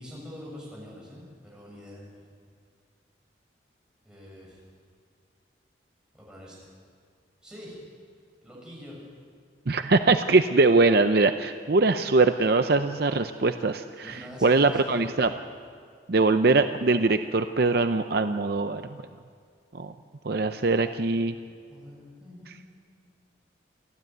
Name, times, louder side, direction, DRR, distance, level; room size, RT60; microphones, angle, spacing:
voice 1, 0.0-2.2 4.0-4.6 6.2-6.7 7.4-7.8 8.4-9.0 14.0-15.3 21.3-22.6, left 1 dB, 5° right, -5 dB, 7.1 m, -44 dB
voice 2, 9.7-15.3 16.1-18.8 19.7-19.9 20.2-21.4, right 3 dB, 55° right, 8 dB, 0.6 m, -22 dB
29.0 x 12.5 x 9.2 m, 2.1 s
head